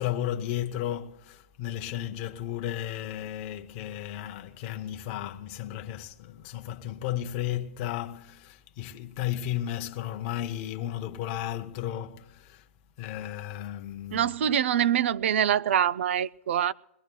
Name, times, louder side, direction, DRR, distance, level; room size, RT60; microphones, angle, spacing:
voice 1, 0.0-12.6 13.0-14.4, left 12 dB, 30° left, 0.7 m, -34 dB
voice 2, 14.1-16.7, right 9 dB, 55° right, 0.4 m, -24 dB
22.0 x 17.0 x 2.3 m
hypercardioid pair, 160°, 8 cm